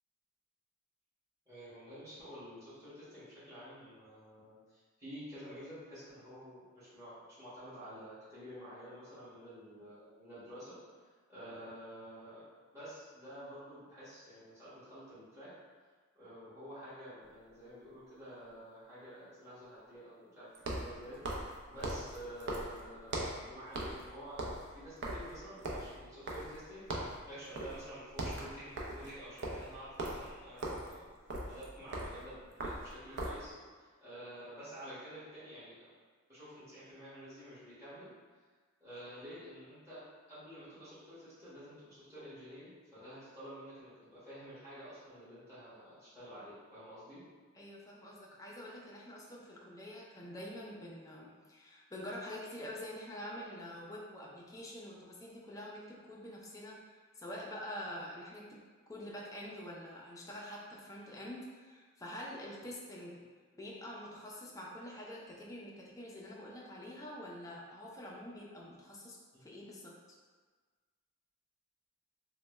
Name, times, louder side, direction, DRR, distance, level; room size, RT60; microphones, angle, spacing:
voice 1, 1.5-10.8 11.3-12.5 12.7-15.5 16.1-21.4 21.7-24.4 24.7-31.1 31.5-35.9 36.3-38.1 38.8-40.0 40.3-47.2 69.3-69.4, equal, 15° right, -13 dB, 1.5 m, -50 dB
sound 1, 17.2-17.3 20.5-23.5 23.7-24.1 24.3-26.6 26.9-27.2 27.6-27.8 28.1-33.5, right 1 dB, 55° right, 0.5 m, -40 dB
voice 2, 47.5-58.6 58.9-63.2 63.6-70.2, left 1 dB, 15° left, -4 dB, 0.4 m, -46 dB
3.2 x 2.1 x 3.0 m, 1.4 s
head